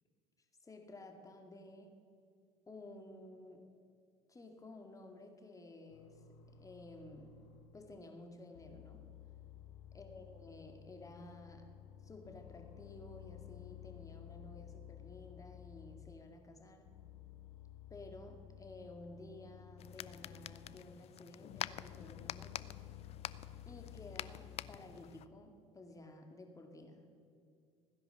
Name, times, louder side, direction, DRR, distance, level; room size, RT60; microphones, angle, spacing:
voice 1, 0.6-2.0 2.7-3.7 4.3-6.2 6.5-7.4 7.7-9.0 9.9-11.7 12.0-16.9 17.9-22.8 23.6-27.1, left 2 dB, 20° left, 4 dB, 2.2 m, -53 dB
sound 1, 5.9-8.0 8.5-16.4 16.9-21.0 21.5-24.7, left 11 dB, 75° left, 1.0 m, -54 dB
sound 2, 19.8-25.3, left 12 dB, 45° left, 0.5 m, -47 dB
16.0 x 10.5 x 6.5 m, 2.4 s
hypercardioid pair, 65°, 15 cm